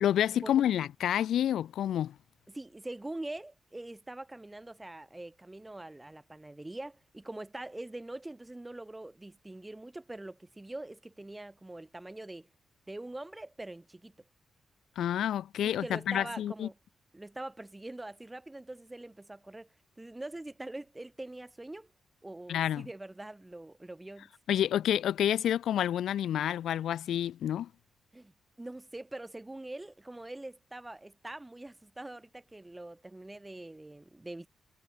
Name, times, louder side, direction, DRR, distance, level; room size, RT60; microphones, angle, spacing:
voice 1, 0.0-2.1 15.0-16.7 22.5-22.9 24.5-27.7, left 10 dB, 90° left, 0.4 m, -29 dB
voice 2, 2.5-12.5 12.9-14.1 15.6-16.8 17.1-19.7 20.0-21.9 22.2-24.3 28.1-28.3 28.6-34.5, right 2 dB, 15° right, 0.6 m, -43 dB
cardioid pair, 110°, 0 cm